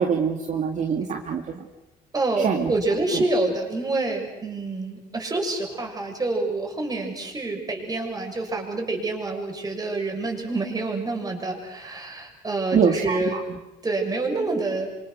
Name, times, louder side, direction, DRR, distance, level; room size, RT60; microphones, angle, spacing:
voice 1, 0.0-1.6 2.4-2.7 3.1-3.2 12.7-13.4, right 6 dB, 45° right, 2 dB, 2.2 m, -24 dB
voice 2, 2.1-13.4 13.8-14.9, right 2 dB, 20° right, 2 dB, 6.7 m, -27 dB
28.0 x 25.5 x 6.4 m, 0.96 s
cardioid pair, 110°, 17 cm